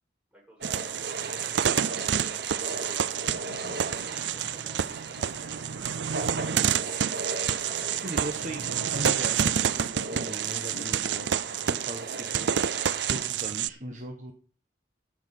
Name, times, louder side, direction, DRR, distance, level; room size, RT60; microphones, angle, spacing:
voice 1, 0.3-1.3 4.1-5.8, equal, 5° right, -3 dB, 7.0 m, -56 dB
sound 1, 0.6-13.3, right 3 dB, 60° right, 1.3 m, -38 dB
sound 2, 0.6-13.7, right 8 dB, 80° right, 0.5 m, -29 dB
sound 3, 3.3-12.6, left 3 dB, 70° left, 0.7 m, -50 dB
voice 2, 8.0-11.3 11.7-12.6 13.0-14.3, right 1 dB, 40° right, 3 dB, 1.3 m, -39 dB
12.5 x 6.3 x 6.7 m, 0.39 s
head